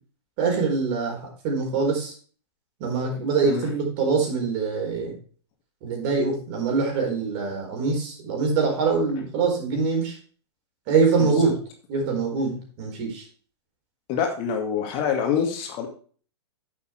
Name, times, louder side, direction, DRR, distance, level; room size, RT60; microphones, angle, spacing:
voice 1, 0.4-2.1 2.8-5.1 5.8-10.2 10.9-11.6 11.9-13.2, right 4 dB, 40° right, 1 dB, 4.5 m, -24 dB
voice 2, 14.1-15.9, left 7 dB, 35° left, 3 dB, 2.1 m, -25 dB
9.9 x 7.2 x 4.6 m, 0.43 s
figure-of-eight pair, 110°, 15 cm